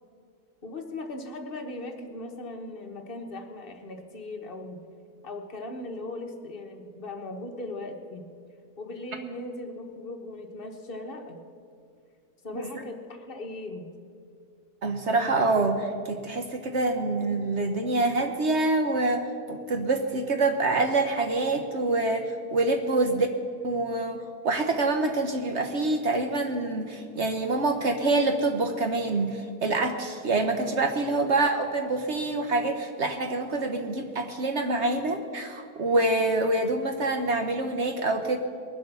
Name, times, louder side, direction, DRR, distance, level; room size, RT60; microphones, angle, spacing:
voice 1, 0.6-4.8 5.2-8.3 8.8-11.4 12.4-13.9 22.9-23.1 31.1-31.3, left 2 dB, 40° left, 3 dB, 1.4 m, -38 dB
voice 2, 14.8-23.3 23.6-38.4, right 2 dB, 50° right, 5 dB, 1.1 m, -26 dB
20.5 x 7.8 x 6.9 m, 2.4 s
omnidirectional pair, 1.6 m